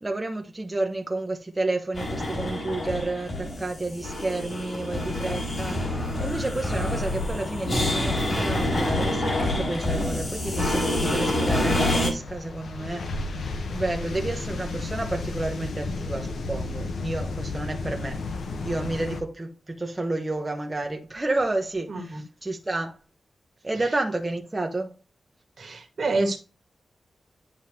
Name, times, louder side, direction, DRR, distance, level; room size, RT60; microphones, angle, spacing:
voice 1, 0.0-13.1 13.3-23.0 23.6-24.9, right 2 dB, 20° right, 1.0 m, -31 dB
sound 1, 1.9-12.1, left 1 dB, 45° left, 4.0 m, -27 dB
sound 2, 4.9-19.2, left 3 dB, 75° left, 1.0 m, -34 dB
voice 2, 21.9-22.2 23.7-23.9 25.6-26.4, right 2 dB, 60° right, 1.7 m, -28 dB
10.5 x 3.6 x 2.9 m
wide cardioid pair, 105°, 0 cm